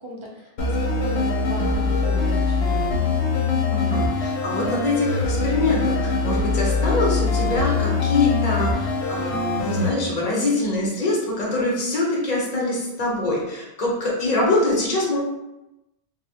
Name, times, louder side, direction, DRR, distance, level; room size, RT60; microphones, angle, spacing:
voice 1, 0.0-3.1, right 1 dB, 45° right, -3 dB, 0.4 m, -36 dB
sound 1, 0.6-9.9, left 3 dB, 80° left, 0.9 m, -23 dB
voice 2, 3.7-15.2, left 2 dB, 45° left, -4 dB, 0.9 m, -24 dB
3.9 x 2.0 x 2.8 m, 0.94 s
omnidirectional pair, 1.1 m